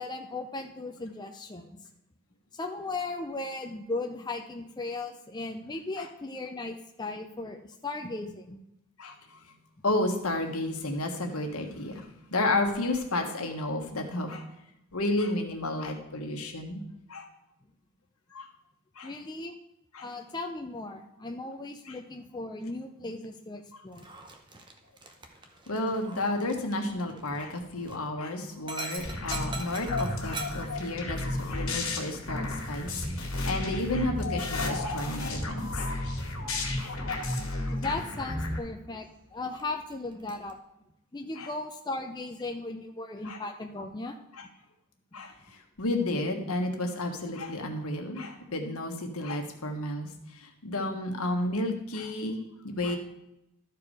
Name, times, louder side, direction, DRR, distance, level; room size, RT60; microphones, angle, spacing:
voice 1, 0.0-1.8 2.5-8.6 19.0-19.5 20.0-24.0 37.7-40.6 41.1-44.2, left 2 dB, 20° left, 4 dB, 0.5 m, -37 dB
voice 2, 9.0-9.4 9.8-14.4 14.9-16.8 17.1-17.3 18.3-18.5 19.0-19.1 19.9-20.1 21.9-22.0 25.7-32.9 33.2-35.9 36.8-36.9 37.2-37.8 41.4-41.5 43.2-43.4 44.4-44.5 45.1-53.0, left 2 dB, 80° left, 4 dB, 1.4 m, -32 dB
Dog, 23.9-40.5, right 3 dB, 20° right, 0.8 m, -47 dB
sound 1, 29.0-38.6, left 2 dB, 65° left, 2.1 m, -32 dB
12.5 x 4.8 x 4.8 m, 0.84 s
head